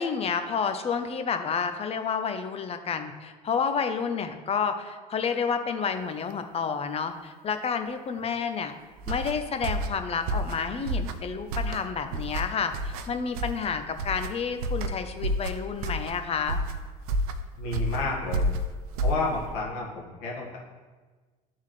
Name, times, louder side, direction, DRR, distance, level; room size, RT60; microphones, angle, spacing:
voice 1, 0.0-8.7 9.1-16.6, left 6 dB, 30° left, 8 dB, 0.7 m, -30 dB
sound 1, 9.0-19.6, right 1 dB, 75° right, 0.5 m, -31 dB
voice 2, 17.6-18.5 19.0-20.6, left 3 dB, 70° left, -3 dB, 1.7 m, -31 dB
10.5 x 3.7 x 3.2 m, 1.4 s
hypercardioid pair, 75°, 19 cm